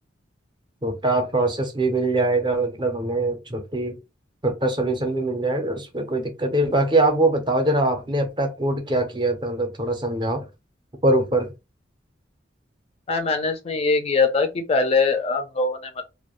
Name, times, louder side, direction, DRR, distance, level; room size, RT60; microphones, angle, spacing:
voice 1, 0.8-4.0 4.4-10.4 11.0-11.5, right 2 dB, 25° right, 0.6 m, -23 dB
voice 2, 13.1-16.1, left 4 dB, 30° left, 0.3 m, -22 dB
2.2 x 2.1 x 2.9 m
head